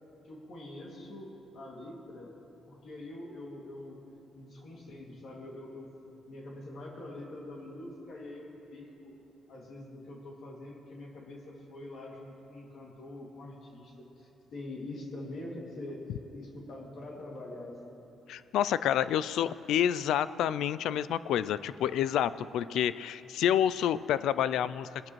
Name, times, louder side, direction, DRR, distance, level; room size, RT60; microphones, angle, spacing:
voice 1, 0.2-2.3 2.7-4.0 4.3-9.1 9.5-16.1 16.3-18.0, left 1 dB, 65° left, -2 dB, 2.4 m, -44 dB
voice 2, 18.3-25.1, left 10 dB, 80° left, 16 dB, 0.3 m, -28 dB
20.0 x 11.5 x 3.2 m, 3.0 s
cardioid pair, 90°, 0 cm